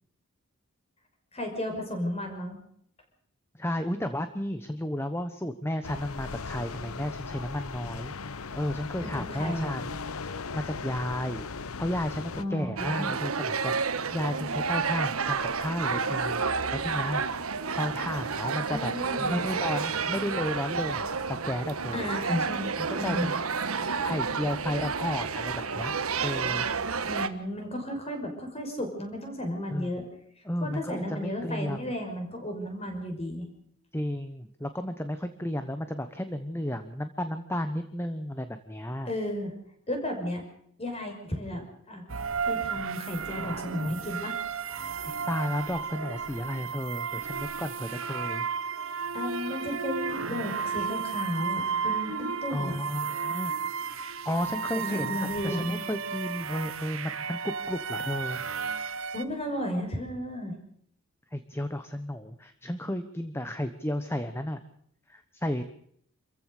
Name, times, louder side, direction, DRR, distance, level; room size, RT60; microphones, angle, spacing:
voice 1, 1.3-2.6 9.0-9.7 12.4-13.1 18.7-19.4 21.9-23.3 27.1-30.0 30.6-33.5 39.0-39.5 39.9-40.4 40.8-42.0 42.4-44.4 49.1-52.8 54.7-55.8 59.1-60.6, left 1 dB, 30° left, 3 dB, 5.9 m, -34 dB
voice 2, 3.6-8.1 8.5-10.0 10.2-11.4 11.8-16.4 16.7-17.2 17.8-18.9 19.2-22.1 22.7-23.3 24.0-25.9 26.2-26.7 29.7-29.9 30.4-31.9 33.9-39.1 45.3-48.5 52.5-53.5 54.2-58.4 61.3-64.6 65.1-65.6, left 1 dB, 10° left, 9 dB, 1.1 m, -33 dB
sound 1, 5.8-12.4, left 4 dB, 90° left, 0.9 m, -38 dB
sound 2, 12.8-27.3, right 5 dB, 90° right, 1.4 m, -30 dB
sound 3, 42.1-59.2, right 6 dB, 70° right, 1.2 m, -33 dB
27.5 x 15.0 x 6.6 m, 0.67 s
head